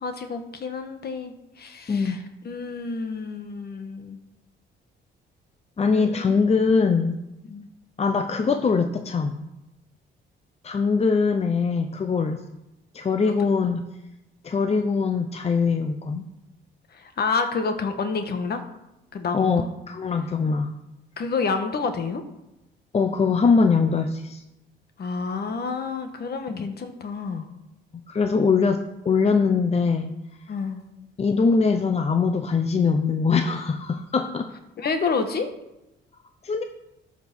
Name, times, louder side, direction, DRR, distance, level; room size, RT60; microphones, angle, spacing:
voice 1, 0.0-4.2 5.9-6.3 7.5-7.7 13.2-13.5 16.9-18.6 19.1-19.7 21.2-22.2 25.0-27.5 30.5-30.8 34.8-35.5, left 4 dB, 55° left, 7 dB, 1.5 m, -29 dB
voice 2, 1.9-2.2 5.8-7.2 8.0-9.5 10.6-12.4 12.9-13.9 14.4-16.3 19.3-20.7 22.9-24.4 26.5-26.7 27.9-30.1 31.2-34.5 36.4-36.6, left 5 dB, 30° left, 7 dB, 0.7 m, -22 dB
13.5 x 5.2 x 6.1 m, 0.93 s
cardioid pair, 90°, 20 cm